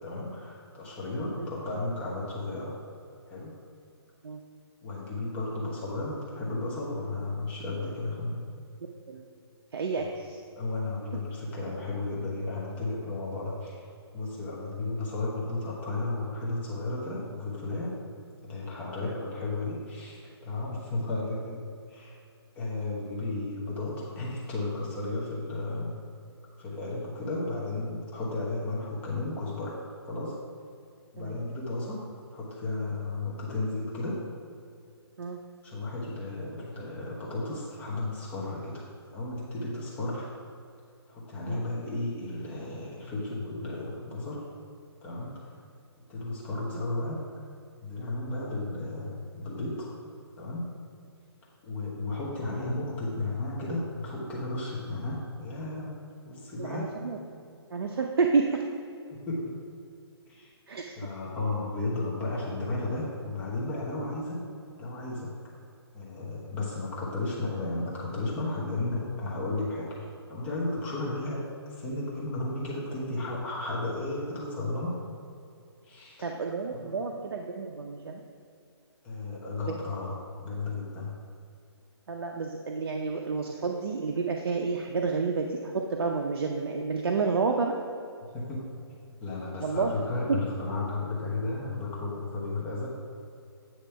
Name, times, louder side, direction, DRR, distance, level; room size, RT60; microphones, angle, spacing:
voice 1, 0.0-2.8 3.3-3.5 4.8-8.4 10.0-10.1 10.6-13.9 14.1-18.0 18.4-21.6 21.9-22.2 22.5-25.9 26.6-29.7 30.0-30.4 31.1-32.0 32.3-34.2 35.6-38.9 39.1-40.3 41.1-44.4 45.0-45.5 46.1-47.2 47.8-49.9 50.4-50.7 51.6-56.0 56.2-56.9 59.1-59.6 60.3-60.5 61.0-64.4 64.8-65.3 65.9-75.0 75.8-76.2 76.7-76.9 79.0-80.1 80.4-81.1 88.3-88.6 89.2-92.9, left 2 dB, 10° left, -5 dB, 1.0 m, -34 dB
voice 2, 9.7-10.4 19.0-19.1 31.2-31.4 35.2-35.4 41.5-41.6 46.7-46.8 56.6-57.2 57.7-58.6 60.7-60.9 66.6-66.7 76.2-78.2 79.7-79.8 82.1-87.7 89.6-89.9 90.3-90.4, right 4 dB, 65° right, 2 dB, 0.6 m, -30 dB
8.8 x 3.0 x 5.6 m, 2.5 s
hypercardioid pair, 160°, 14 cm